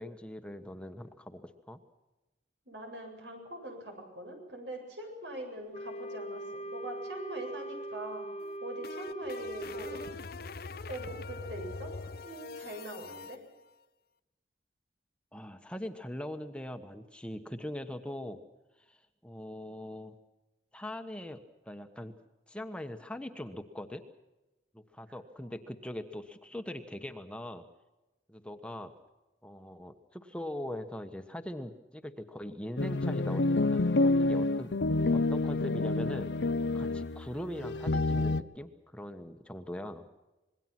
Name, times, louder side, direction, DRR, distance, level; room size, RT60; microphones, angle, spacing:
voice 1, 0.0-1.4 1.7-1.8 15.3-18.4 18.9-19.0 19.2-20.2 20.7-22.1 22.5-24.0 24.7-27.6 28.3-28.9 29.4-34.7 35.1-36.3 36.7-40.1, left 1 dB, 5° left, 7 dB, 1.2 m, -41 dB
voice 2, 2.7-8.2 8.6-10.1 10.9-13.4 25.1-25.2 25.4-25.5, right 1 dB, 85° right, 3 dB, 7.9 m, -43 dB
Wind instrument woodwind instrument, 5.7-10.2, right 1 dB, 35° left, 1.1 m, -41 dB
sound 1, 8.4-13.4, left 4 dB, 60° left, 0.8 m, -43 dB
sound 2, 32.8-38.4, left 2 dB, 85° left, 0.8 m, -28 dB
26.5 x 21.5 x 6.0 m, 1.1 s
head